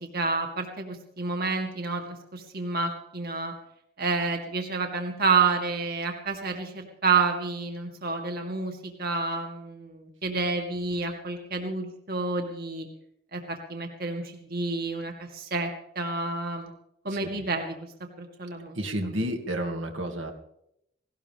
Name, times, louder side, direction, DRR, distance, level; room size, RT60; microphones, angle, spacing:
voice 1, 0.0-3.5 4.0-12.9 13.3-15.7 16.0-16.7 17.0-17.7 18.2-18.8, right 4 dB, 50° right, 3 dB, 2.3 m, -29 dB
voice 2, 17.1-17.4 18.7-20.3, right 1 dB, 80° right, 3 dB, 2.5 m, -31 dB
18.5 x 18.0 x 3.6 m, 0.75 s
head